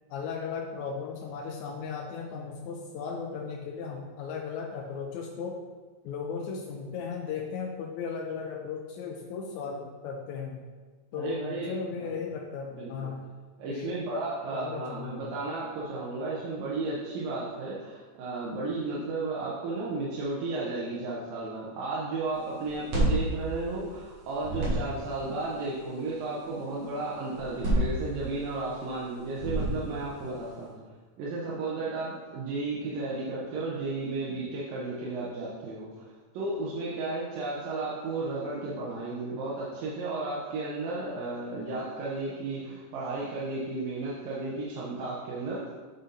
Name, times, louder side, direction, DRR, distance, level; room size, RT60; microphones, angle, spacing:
voice 1, 0.1-5.6 6.0-10.6 11.1-13.3 13.7-14.0 14.5-15.3, left 5 dB, 80° left, 0 dB, 1.7 m, -36 dB
voice 2, 11.1-12.2 12.7-13.1 13.6-30.8 31.2-45.7, right 3 dB, 85° right, -7 dB, 2.7 m, -34 dB
sound 1, 22.6-24.1 24.4-25.2 27.3-28.6 29.3-30.1, right 1 dB, 60° right, 3.0 m, -29 dB
9.5 x 4.0 x 3.9 m, 1.4 s
omnidirectional pair, 3.9 m